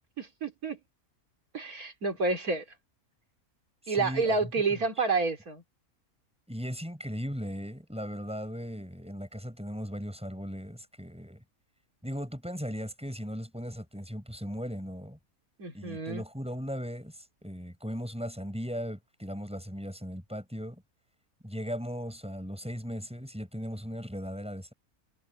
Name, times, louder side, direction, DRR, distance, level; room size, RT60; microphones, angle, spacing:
voice 1, 0.2-0.8 1.5-2.6 3.9-5.6 15.6-16.2, right 3 dB, 75° right, 3.7 m, -29 dB
voice 2, 3.9-4.5 6.5-11.4 12.0-15.2 15.7-20.8 21.4-24.7, equal, 5° right, 7.4 m, -37 dB
omnidirectional pair, 1.5 m